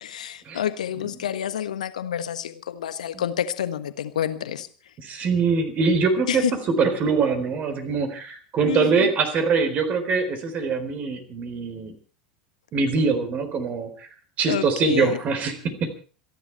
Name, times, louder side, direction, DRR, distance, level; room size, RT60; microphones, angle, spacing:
voice 1, 0.0-4.7 6.3-6.5 8.6-9.1 14.5-15.2, left 10 dB, 70° left, 12 dB, 1.4 m, -28 dB
voice 2, 5.0-6.4 6.8-11.9 12.7-14.1 14.4-15.9, right 5 dB, 40° right, 9 dB, 4.0 m, -23 dB
27.0 x 11.0 x 4.5 m, 0.38 s
figure-of-eight pair, 80°, 4 cm